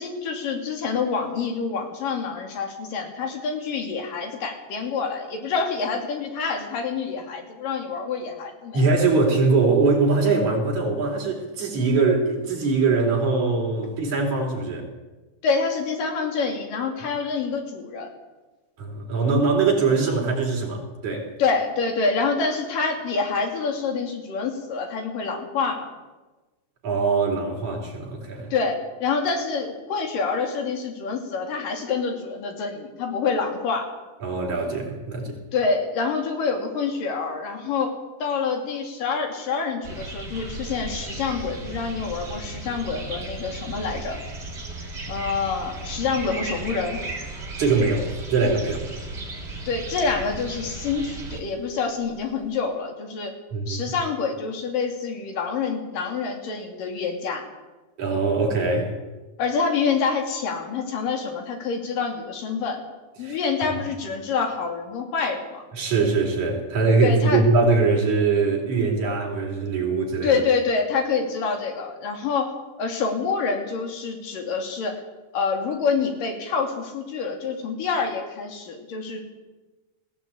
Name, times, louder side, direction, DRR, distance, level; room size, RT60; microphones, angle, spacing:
voice 1, 0.0-8.8 15.4-18.1 21.4-25.9 28.5-33.9 35.5-37.9 38.2-44.2 45.1-47.0 49.7-53.3 53.7-57.4 59.4-62.8 63.2-65.6 67.0-67.4 70.2-72.5 72.8-74.9 75.3-79.2, left 5 dB, 65° left, 4 dB, 4.3 m, -27 dB
voice 2, 8.7-14.9 18.8-21.3 26.8-28.5 34.2-35.4 47.6-48.9 53.5-53.9 58.0-58.9 63.2-63.4 63.7-63.8 65.7-70.4, right 4 dB, 50° right, 0 dB, 5.1 m, -22 dB
sound 1, 39.8-52.6, right 2 dB, 25° right, 4.2 m, -35 dB
20.0 x 15.5 x 8.7 m, 1.2 s
omnidirectional pair, 4.3 m